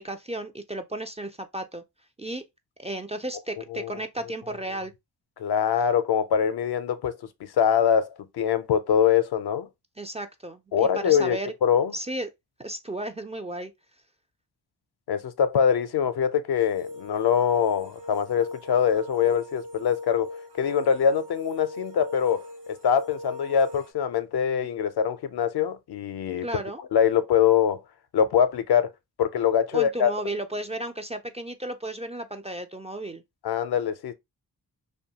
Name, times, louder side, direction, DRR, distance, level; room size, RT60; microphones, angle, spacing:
voice 1, 0.0-1.8 2.2-2.4 2.8-4.9 10.0-11.5 11.9-12.3 12.6-13.7 26.4-26.8 29.7-33.2, right 1 dB, 15° right, 0.3 m, -34 dB
voice 2, 5.4-9.7 10.7-11.9 15.1-26.5 26.9-27.8 28.1-28.9 29.2-30.1 33.4-34.1, left 8 dB, 70° left, 0.5 m, -23 dB
sound 1, 16.5-23.9, left 1 dB, 90° right, 1.1 m, -40 dB
2.6 x 2.2 x 2.8 m
cardioid pair, 50°, 40 cm